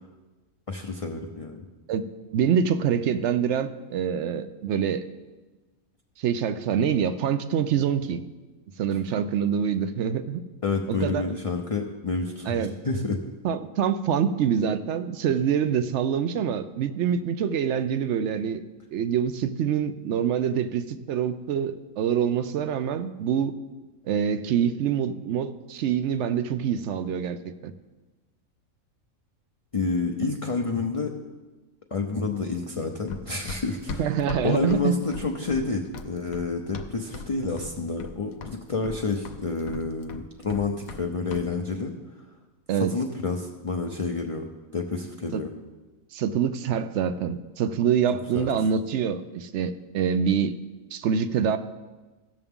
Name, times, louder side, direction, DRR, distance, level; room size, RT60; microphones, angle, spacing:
voice 1, 0.7-1.6 10.6-13.2 29.7-31.1 31.9-34.0 34.4-41.9 42.8-44.4 44.7-45.5 48.3-48.5, left 4 dB, 40° left, 2 dB, 0.5 m, -29 dB
voice 2, 2.3-5.0 6.2-8.2 8.8-10.4 10.9-11.3 12.5-12.7 13.4-18.6 18.9-23.5 24.1-27.4 27.6-27.7 34.0-35.0 42.7-42.9 45.3-45.4 46.1-50.6 50.9-51.6, right 8 dB, 65° right, 11 dB, 0.8 m, -25 dB
Run, 33.1-37.3 37.6-38.2 38.4-41.0 41.3-41.5, left 4 dB, 80° left, 1.2 m, -37 dB
16.0 x 6.9 x 3.6 m, 1.2 s
omnidirectional pair, 1.4 m